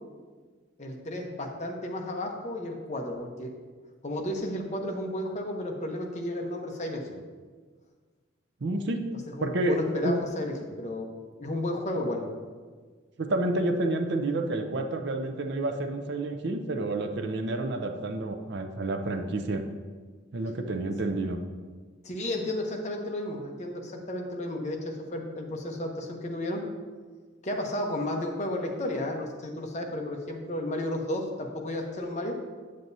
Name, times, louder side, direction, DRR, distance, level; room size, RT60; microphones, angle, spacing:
voice 1, 0.8-3.5 4.0-7.1 9.4-11.1 11.4-12.2 22.0-26.7 27.4-32.4, left 1 dB, 35° left, 2 dB, 0.8 m, -33 dB
voice 2, 8.6-9.0 9.4-9.8 10.0-10.2 13.2-19.6 20.3-21.4, right 2 dB, 55° right, 6 dB, 0.5 m, -29 dB
8.3 x 7.5 x 2.7 m, 1.5 s
head